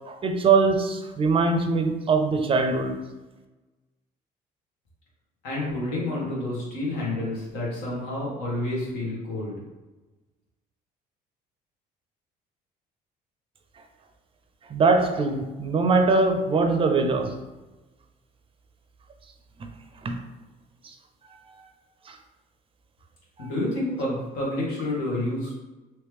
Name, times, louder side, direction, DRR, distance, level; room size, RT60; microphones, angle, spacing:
voice 1, 0.1-3.0 14.7-17.3 20.0-20.2 20.8-20.9 22.1-22.2 23.4-23.5, right 4 dB, 35° right, 7 dB, 0.4 m, -22 dB
voice 2, 5.4-9.6 23.4-25.5, left 1 dB, 90° left, -5 dB, 1.5 m, -29 dB
3.1 x 3.0 x 3.4 m, 1.1 s
cardioid pair, 110°, 17 cm